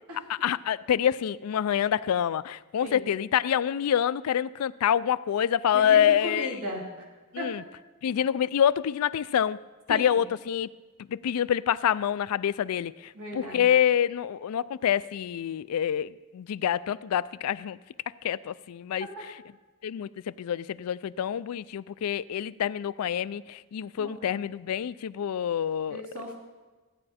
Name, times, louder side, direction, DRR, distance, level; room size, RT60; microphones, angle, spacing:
voice 1, 0.3-6.5 7.3-7.6 8.0-9.6 9.9-10.7 11.1-17.8 18.2-19.1 19.8-26.0, left 9 dB, 85° left, 0.3 m, -26 dB
voice 2, 5.7-6.8 7.4-7.5 9.9-10.1 13.1-13.7 19.2-19.3 24.0-24.4 25.9-26.3, equal, 90° right, 2.9 m, -36 dB
15.0 x 9.7 x 4.2 m
head